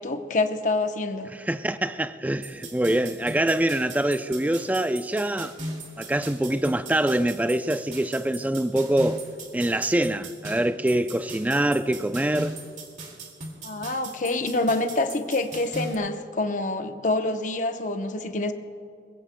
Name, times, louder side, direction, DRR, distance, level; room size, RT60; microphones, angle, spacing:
voice 1, 0.0-1.3 13.6-18.5, left 2 dB, 45° left, 0.8 m, -26 dB
voice 2, 1.3-5.5 6.0-9.2 9.5-12.6, right 1 dB, 10° right, 0.3 m, -24 dB
sound 1, 2.4-15.9, right 2 dB, 45° right, 2.1 m, -39 dB
23.0 x 21.0 x 2.2 m
head